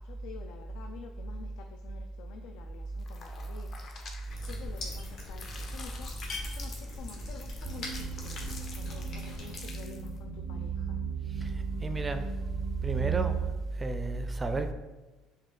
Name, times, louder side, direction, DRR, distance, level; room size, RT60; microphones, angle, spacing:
voice 1, 0.0-8.4 8.8-11.0, left 7 dB, 85° left, 0.3 m, -50 dB
sound 1, 3.0-4.9 5.3-10.2, left 4 dB, 45° left, 0.6 m, -48 dB
sound 2, 4.3-9.6, left 2 dB, 60° left, 1.3 m, -42 dB
sound 3, 7.6-13.5, right 8 dB, 90° right, 0.4 m, -36 dB
voice 2, 11.8-12.3 12.8-13.4 13.8-14.7, right 2 dB, 20° right, 0.4 m, -31 dB
5.0 x 2.4 x 3.7 m
cardioid pair, 130°, 0 cm